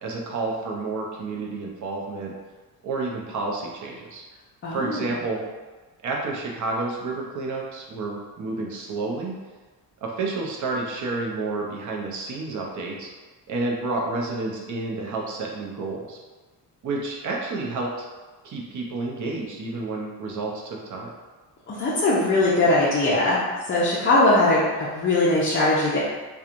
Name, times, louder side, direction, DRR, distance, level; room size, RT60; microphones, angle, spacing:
voice 1, 0.0-2.3 2.8-4.2 4.7-5.4 6.0-9.3 10.0-13.1 13.5-16.2 16.8-18.1 18.4-21.1, right 3 dB, 50° right, -1 dB, 0.6 m, -30 dB
voice 2, 4.6-5.1 21.7-23.4 23.7-26.0, left 2 dB, 30° left, -8 dB, 0.5 m, -20 dB
2.9 x 2.3 x 2.4 m, 1.3 s
cardioid pair, 125°, 39 cm